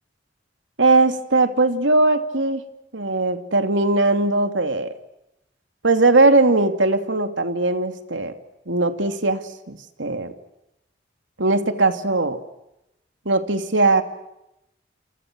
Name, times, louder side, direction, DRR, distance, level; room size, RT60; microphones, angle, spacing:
voice 1, 0.8-2.6 2.9-4.9 5.8-8.3 8.7-10.3 11.4-12.4 13.2-14.0, right 2 dB, 85° right, 8 dB, 2.8 m, -19 dB
28.5 x 28.0 x 6.3 m, 0.86 s
head